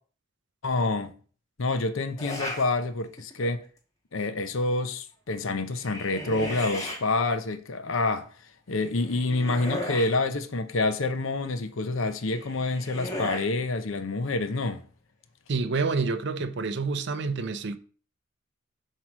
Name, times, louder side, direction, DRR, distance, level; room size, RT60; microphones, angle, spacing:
voice 1, 0.6-1.2 1.6-3.6 4.1-8.3 8.7-14.9, left 3 dB, 75° left, 0.8 m, -27 dB
sound 1, 2.2-2.7 3.2-3.6 5.6-7.0 8.7-10.2 12.1-13.5, left 1 dB, 20° left, 1.5 m, -36 dB
voice 2, 15.5-17.8, right 4 dB, 60° right, 0.6 m, -28 dB
7.5 x 3.1 x 6.1 m
head